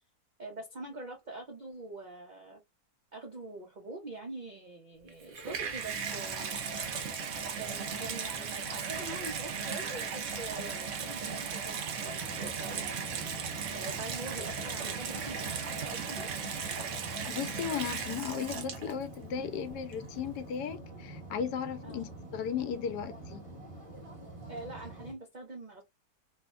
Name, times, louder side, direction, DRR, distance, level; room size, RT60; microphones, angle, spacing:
voice 1, 0.4-2.6 3.1-7.0 7.6-13.5 13.7-16.3 21.8-22.1 24.5-25.8, right 2 dB, 85° right, 0.4 m, -44 dB
Water tap faucet / Bathtub (filling or washing), 5.1-19.1 19.9-20.0, right 6 dB, 60° right, 0.9 m, -36 dB
sound 1, 12.0-25.1, right 2 dB, 25° right, 1.0 m, -46 dB
voice 2, 17.3-23.5, left 8 dB, 90° left, 1.2 m, -36 dB
3.2 x 2.1 x 2.3 m
omnidirectional pair, 1.7 m